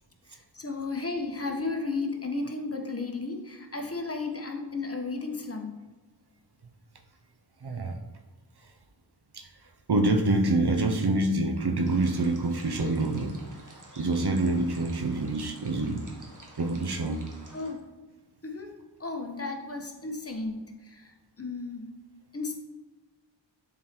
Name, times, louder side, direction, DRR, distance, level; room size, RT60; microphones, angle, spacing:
voice 1, 0.5-5.7 17.5-17.8 18.4-18.7 19.0-21.1 21.4-21.9 22.3-22.6, left 3 dB, 30° left, 3 dB, 1.0 m, -34 dB
voice 2, 7.6-8.0 9.3-9.5 9.9-13.3 14.0-16.1 16.6-17.2, right 2 dB, 60° right, 5 dB, 0.9 m, -26 dB
sound 1, 11.9-17.7, right 2 dB, 45° right, 1.3 m, -51 dB
7.4 x 4.2 x 4.4 m, 1.2 s
wide cardioid pair, 55°, 44 cm